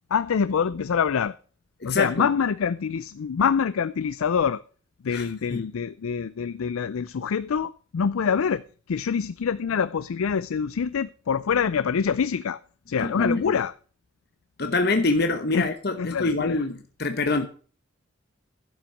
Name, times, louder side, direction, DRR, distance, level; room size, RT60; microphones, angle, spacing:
voice 1, 0.1-1.3 1.8-4.6 5.0-12.6 12.9-13.7 15.5-15.7 16.0-16.6, left 6 dB, 85° left, 0.4 m, -25 dB
voice 2, 1.8-2.3 5.1-5.2 5.5-5.6 13.0-13.5 14.6-17.5, left 3 dB, 50° left, 0.9 m, -25 dB
11.5 x 5.9 x 7.2 m
head